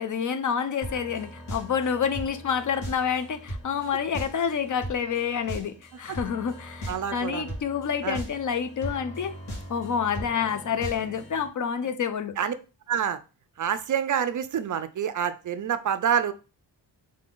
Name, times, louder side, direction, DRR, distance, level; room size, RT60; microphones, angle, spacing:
voice 1, 0.0-9.3 9.7-12.3, left 7 dB, 45° left, 0.5 m, -28 dB
sound 1, 0.8-11.5, equal, 60° left, 1.9 m, -39 dB
voice 2, 6.9-7.6 8.0-8.2 12.4-12.5 12.9-13.2 13.6-16.3, right 8 dB, 45° right, 0.4 m, -27 dB
3.8 x 3.4 x 3.7 m
wide cardioid pair, 145°, 44 cm